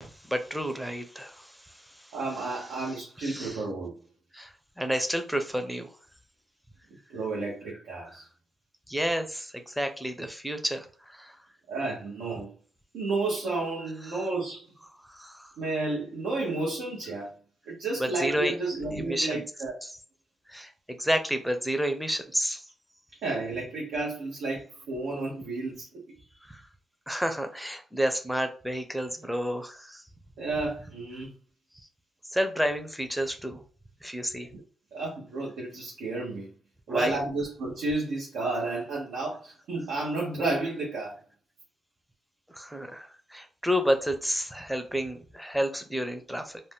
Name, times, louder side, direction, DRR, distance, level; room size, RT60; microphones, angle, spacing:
voice 1, 0.0-2.1 2.4-2.9 3.2-3.6 4.3-5.9 8.1-8.2 8.9-11.4 15.1-15.5 18.0-18.5 18.9-19.4 19.8-19.9 20.5-22.6 26.4-26.6 27.1-30.0 32.3-33.6 34.0-34.5 36.9-37.2 42.5-46.6, equal, ahead, 7 dB, 0.6 m, -30 dB
voice 2, 2.1-4.0 7.1-8.3 11.7-12.5 12.9-14.6 15.6-17.3 17.7-19.7 23.2-25.9 30.4-31.3 34.5-34.6 34.9-36.5 36.9-41.2, right 3 dB, 85° right, -4 dB, 0.8 m, -31 dB
2.6 x 2.1 x 3.4 m, 0.40 s
cardioid pair, 80°, 0 cm